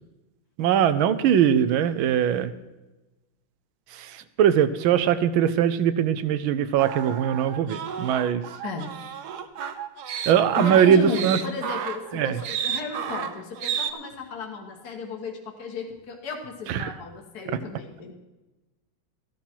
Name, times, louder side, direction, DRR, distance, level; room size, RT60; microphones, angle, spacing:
voice 1, 0.6-2.5 3.9-8.4 10.3-11.4 12.1-12.4 16.7-16.9, right 9 dB, 80° right, 13 dB, 1.5 m, -21 dB
sound 1, 6.8-13.9, right 8 dB, 60° right, 1.2 m, -32 dB
voice 2, 8.6-9.0 10.1-10.3 10.6-18.1, left 4 dB, 50° left, 3 dB, 2.0 m, -34 dB
14.5 x 11.5 x 4.5 m, 1.1 s
omnidirectional pair, 2.2 m